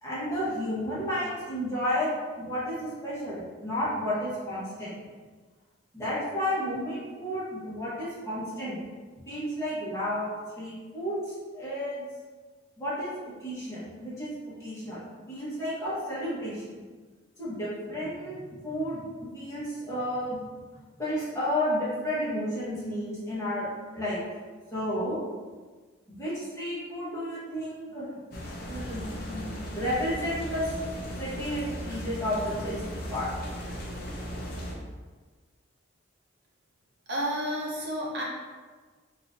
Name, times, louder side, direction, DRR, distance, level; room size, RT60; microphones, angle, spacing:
voice 1, 0.0-5.0 5.9-8.8 9.2-10.3 10.5-12.0 12.8-13.1 13.4-14.3 14.6-16.8 17.4-20.5 21.0-23.7 23.9-24.2 24.7-25.2 26.1-28.1 28.6-30.7 31.2-32.8 33.1-33.3, equal, 15° left, -10 dB, 1.2 m, -32 dB
sound 1, 28.3-34.7, equal, 45° left, 0.6 m, -37 dB
voice 2, 37.1-38.2, equal, 55° right, -3 dB, 0.8 m, -30 dB
4.2 x 2.6 x 2.6 m, 1.4 s
head